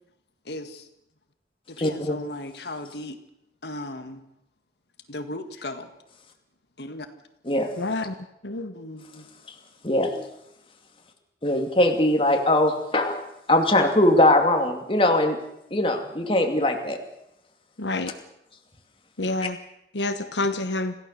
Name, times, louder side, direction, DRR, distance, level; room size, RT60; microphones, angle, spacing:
voice 1, 0.5-0.9 1.7-3.2 3.6-4.2 5.1-5.9 6.8-7.1 8.7-9.3, left 1 dB, 70° left, 7 dB, 1.8 m, -36 dB
voice 2, 1.8-2.2 7.5-7.7 9.8-10.3 11.4-15.4 15.7-17.0, left 1 dB, 30° left, 4 dB, 2.6 m, -21 dB
voice 3, 7.8-8.2 8.4-8.8 17.8-18.1 19.2-19.6 19.9-20.9, left 2 dB, 85° left, 8 dB, 1.2 m, -28 dB
26.5 x 16.0 x 6.7 m, 0.83 s
head